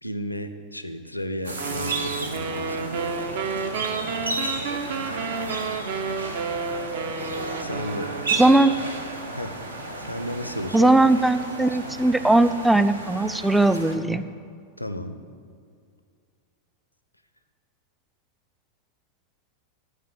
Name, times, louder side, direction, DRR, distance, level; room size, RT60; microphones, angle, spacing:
voice 1, 0.0-3.1 7.6-8.1 8.4-8.6 9.3-9.6 10.1-10.9 11.7-11.8 14.8-15.2, equal, 85° left, 10 dB, 0.6 m, -33 dB
sound 1, 1.4-14.0, right 2 dB, 75° right, 1.0 m, -33 dB
sound 2, 1.6-8.8, right 5 dB, 55° right, 0.7 m, -31 dB
voice 2, 8.4-8.7 10.7-14.2, right 2 dB, 5° right, 12 dB, 0.4 m, -19 dB
11.0 x 5.3 x 7.7 m, 2.2 s
figure-of-eight pair, 90°, 0 cm